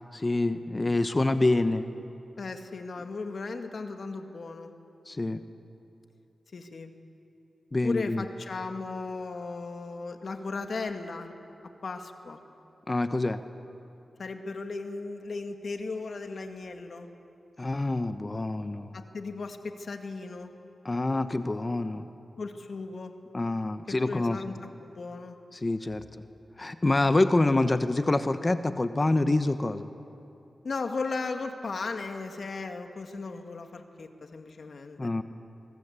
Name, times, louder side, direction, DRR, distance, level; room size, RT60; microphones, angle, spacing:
voice 1, 0.1-1.8 5.1-5.4 7.7-8.2 12.9-13.4 17.6-18.9 20.8-22.1 23.3-24.4 25.5-26.0 26.6-29.9 35.0-35.2, left 2 dB, 35° left, 10 dB, 1.1 m, -26 dB
voice 2, 2.4-4.7 6.5-6.9 7.8-11.3 11.8-12.4 14.2-17.1 18.9-20.5 22.4-23.1 23.9-24.6 24.8-25.4 30.6-35.1, left 3 dB, 65° left, 6 dB, 2.1 m, -36 dB
24.5 x 24.0 x 8.4 m, 2.8 s
cardioid pair, 50°, 0 cm